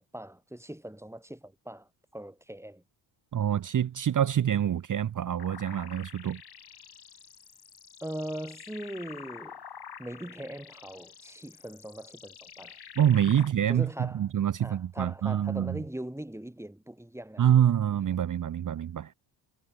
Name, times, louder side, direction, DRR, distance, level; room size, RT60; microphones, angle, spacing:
voice 1, 0.0-2.8 8.0-9.6 10.0-12.8 13.7-14.3 14.6-17.5, right 1 dB, 5° right, 4.5 m, -40 dB
voice 2, 3.3-6.4 13.0-15.8 17.4-19.1, right 10 dB, 40° right, 0.8 m, -26 dB
sound 1, 5.4-13.5, left 7 dB, 50° left, 7.1 m, -48 dB
cardioid pair, 80°, 48 cm